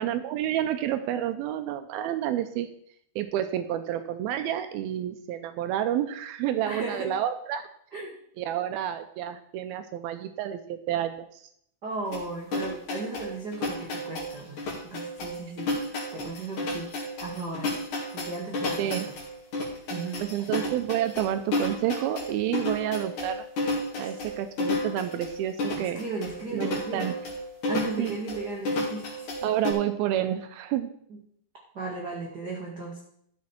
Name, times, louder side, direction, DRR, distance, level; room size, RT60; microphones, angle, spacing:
voice 1, 0.0-2.7 3.2-7.7 8.4-11.4 18.8-19.1 20.2-23.4 24.0-26.0 26.5-27.1 28.0-28.2 29.4-30.9, right 11 dB, 85° right, 9 dB, 2.3 m, -29 dB
voice 2, 6.6-7.1 7.9-8.1 11.8-15.7 16.1-16.9 17.2-17.7 18.1-19.1 19.9-20.2 24.0-24.1 25.8-27.1 27.7-29.3 31.7-33.0, right 3 dB, 60° right, -2 dB, 1.0 m, -36 dB
sound 1, 12.1-29.7, left 1 dB, 50° left, 3.5 m, -32 dB
13.0 x 7.4 x 4.4 m, 0.68 s
omnidirectional pair, 4.8 m